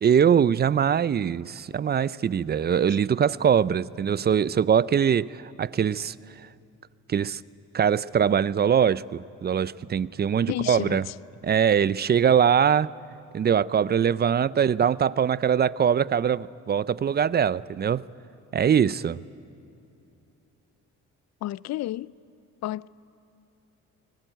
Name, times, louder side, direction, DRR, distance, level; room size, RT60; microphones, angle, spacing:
voice 1, 0.0-6.1 7.1-7.4 7.7-11.0 11.4-12.9 13.3-18.1 18.5-19.2, right 8 dB, 35° right, 0.5 m, -22 dB
voice 2, 10.5-11.1 21.4-22.2 22.6-22.9, left 14 dB, 65° left, 0.5 m, -31 dB
24.0 x 19.0 x 9.1 m
cardioid pair, 90°, 30 cm